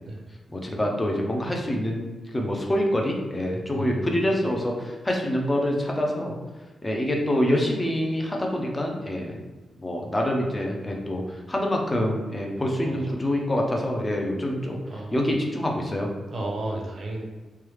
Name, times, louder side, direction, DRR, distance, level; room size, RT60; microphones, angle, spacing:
voice 1, 0.5-2.1 2.3-6.3 6.8-9.4 9.8-14.8 15.1-16.1, left 1 dB, 15° left, 0 dB, 0.5 m, -26 dB
voice 2, 3.7-4.2 12.8-12.9 14.9-15.1 16.3-17.2, right 1 dB, 50° right, 0 dB, 0.6 m, -33 dB
3.2 x 2.3 x 3.1 m, 1.2 s
wide cardioid pair, 135°, 0 cm